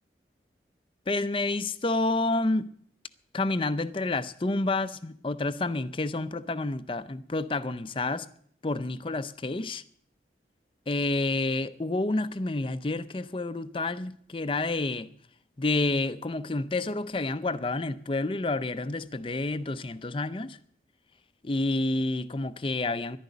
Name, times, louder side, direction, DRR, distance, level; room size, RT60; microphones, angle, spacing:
voice 1, 1.1-2.7 3.3-8.3 8.6-9.8 10.9-15.1 15.6-20.6 21.4-23.2, left 2 dB, 30° left, 0.5 m, -29 dB
11.5 x 10.5 x 9.2 m
head